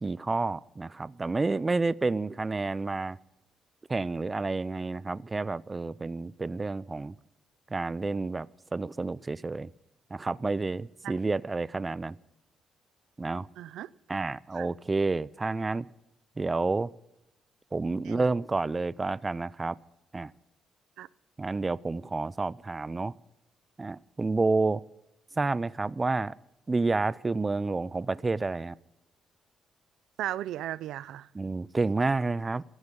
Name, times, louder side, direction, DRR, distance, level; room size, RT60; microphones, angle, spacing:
voice 1, 0.0-3.2 3.9-7.1 7.7-8.5 8.7-9.7 10.1-12.2 13.2-13.5 14.1-15.9 16.4-16.9 17.7-19.8 20.1-20.3 21.4-23.1 23.8-24.8 25.4-26.3 26.7-28.8 31.3-32.6, right 3 dB, 25° right, 0.5 m, -29 dB
voice 2, 13.6-14.2 14.5-14.7 18.0-18.3 21.0-21.1 30.2-31.3, right 13 dB, 85° right, 0.4 m, -36 dB
16.5 x 15.0 x 5.4 m
cardioid pair, 90°, 0 cm